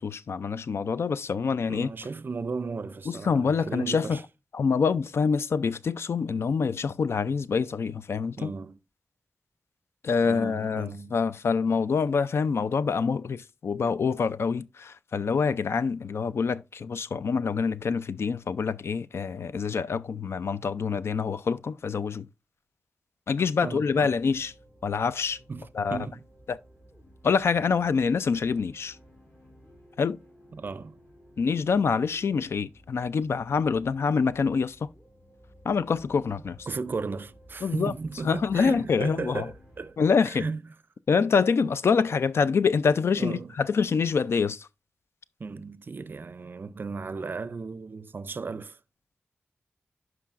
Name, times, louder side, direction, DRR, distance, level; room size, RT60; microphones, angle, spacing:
voice 1, 0.0-1.9 3.1-4.2 4.5-8.5 10.0-22.3 23.3-24.5 24.8-25.4 25.7-26.0 26.5-26.6 27.2-29.0 30.0-30.2 31.4-34.9 35.6-36.6 37.6-37.9 38.2-39.5 40.0-40.5 41.1-44.7, left 5 dB, 75° left, 0.3 m, -26 dB
voice 2, 1.7-4.2 8.4-8.8 10.2-11.2 23.6-24.1 25.5-26.3 30.5-31.0 36.7-40.0 40.2-40.6 41.2-41.3 43.2-43.5 45.4-48.8, right 4 dB, 50° right, 0.4 m, -35 dB
sound 1, 23.9-39.9, equal, 35° left, 2.5 m, -55 dB
11.5 x 4.7 x 2.4 m
wide cardioid pair, 110°, 4 cm